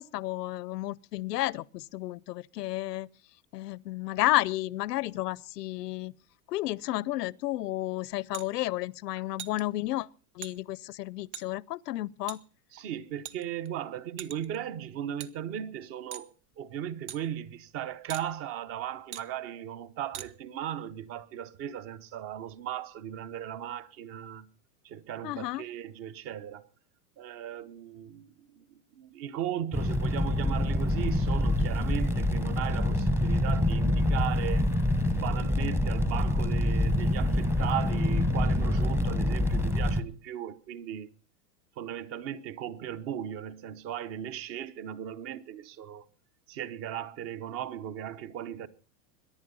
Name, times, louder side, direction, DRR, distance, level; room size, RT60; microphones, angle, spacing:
voice 1, 0.0-3.1 3.5-6.1 6.5-10.1 10.3-12.4 25.2-25.6, left 16 dB, 90° left, 0.8 m, -32 dB
sound 1, 8.3-8.5 9.4-9.6 10.4-10.5 11.3-11.5 12.3-12.4 13.2-13.7 14.2-14.6 15.2-15.3 16.1-16.3 17.1-17.2 18.1-18.3 19.1-19.3 20.1-20.3, right 11 dB, 45° right, 1.2 m, -40 dB
voice 2, 12.7-16.3 16.6-24.5 24.8-26.6 27.2-28.6 29.0-34.6 35.1-41.1 41.8-46.0 46.5-48.7, right 10 dB, 30° right, 0.9 m, -37 dB
Fire, 29.7-40.0, left 1 dB, 5° right, 1.0 m, -26 dB
23.0 x 11.0 x 5.5 m
supercardioid pair, 155°, 47 cm